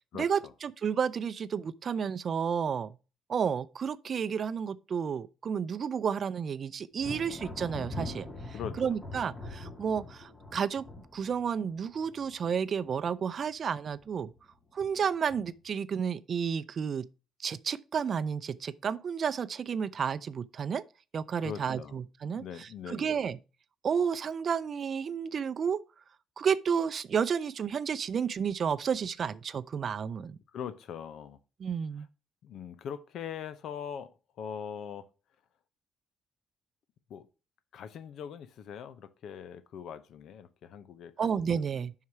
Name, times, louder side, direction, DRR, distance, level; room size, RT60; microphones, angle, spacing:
voice 1, 0.1-3.0 3.3-10.8 11.1-14.3 14.7-17.1 17.4-20.8 21.1-23.4 23.8-25.8 26.4-30.4 31.6-32.1 41.2-41.9, right 7 dB, 50° right, 0.4 m, -31 dB
Thunder, 7.0-13.5 13.8-14.4 14.8-15.7, left 2 dB, 25° left, 2.5 m, -43 dB
voice 2, 8.5-9.0 21.4-22.0 22.3-23.2 30.5-31.4 32.4-35.1 37.1-37.3 37.7-41.1 41.4-41.6, left 8 dB, 75° left, 0.7 m, -41 dB
5.7 x 4.7 x 5.7 m
cardioid pair, 90°, 0 cm